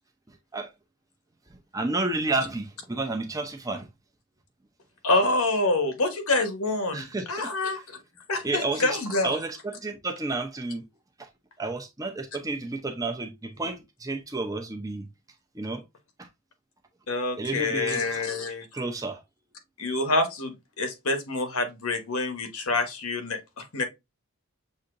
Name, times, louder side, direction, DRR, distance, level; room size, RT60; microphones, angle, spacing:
voice 1, 0.3-0.7 1.7-3.9 6.9-7.5 8.4-10.8 11.2-11.3 11.6-15.1 15.5-15.8 16.2-16.3 17.4-18.2 18.7-19.2, right 3 dB, 15° right, 0.6 m, -31 dB
voice 2, 5.0-7.8 8.3-9.3 17.1-18.7 19.8-23.8, left 2 dB, 80° left, 1.1 m, -27 dB
6.5 x 2.8 x 2.5 m
head